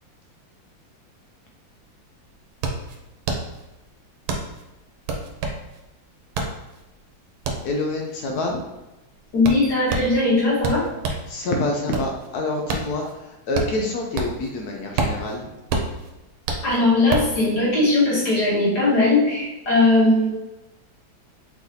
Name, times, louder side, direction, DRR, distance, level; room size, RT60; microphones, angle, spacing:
sound 1, 2.0-11.3 11.7-14.5 14.8-17.4, right 3 dB, 90° right, 1.5 m, -28 dB
voice 1, 7.6-8.6 11.3-15.5, left 2 dB, 70° left, 1 dB, 0.9 m, -27 dB
voice 2, 9.3-10.9 16.6-20.3, left 2 dB, 55° left, -8 dB, 2.2 m, -19 dB
4.9 x 3.9 x 2.8 m, 1.0 s
omnidirectional pair, 2.2 m